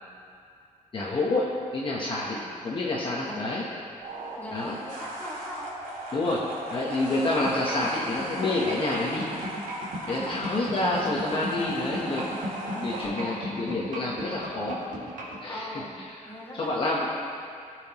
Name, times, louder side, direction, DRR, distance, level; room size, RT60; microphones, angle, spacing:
voice 1, 0.9-3.6 4.5-4.8 6.1-6.4 6.7-9.3 10.1-12.4 12.7-14.8 15.4-15.7 16.6-17.1, left 2 dB, 40° left, -4 dB, 1.0 m, -28 dB
voice 2, 2.1-2.5 3.2-3.5 4.4-5.7 10.1-10.4 13.0-13.4 15.4-17.1, equal, 10° left, -5 dB, 1.6 m, -40 dB
sound 1, 4.0-13.0, right 1 dB, 85° right, 2.3 m, -38 dB
sound 2, 7.4-15.4, equal, 70° right, 1.9 m, -34 dB
17.5 x 5.9 x 2.9 m, 2.3 s
wide cardioid pair, 160°, 14 cm